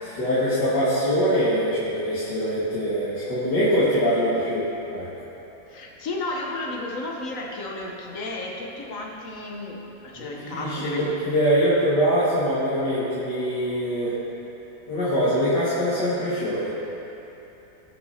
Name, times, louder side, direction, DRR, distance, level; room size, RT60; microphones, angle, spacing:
voice 1, 0.0-5.1 10.2-14.2 14.9-16.7, equal, 65° left, -12 dB, 2.5 m, -23 dB
voice 2, 5.7-11.2, left 2 dB, 50° left, -1 dB, 1.3 m, -33 dB
18.5 x 6.7 x 2.8 m, 3.0 s
omnidirectional pair, 2.0 m